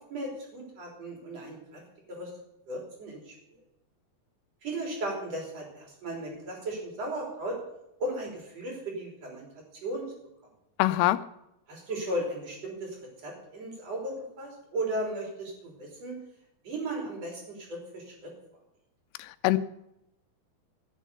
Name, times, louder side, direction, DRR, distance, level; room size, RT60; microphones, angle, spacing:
voice 1, 0.1-1.8 2.1-2.3 2.7-3.3 4.6-7.6 8.0-9.5 9.8-10.1 11.7-13.0 13.2-16.2 16.6-18.3, right 1 dB, 40° right, -1 dB, 4.6 m, -36 dB
voice 2, 10.8-11.2 19.2-19.6, left 17 dB, 85° left, 12 dB, 2.6 m, -24 dB
15.0 x 7.4 x 6.8 m, 0.84 s
omnidirectional pair, 4.6 m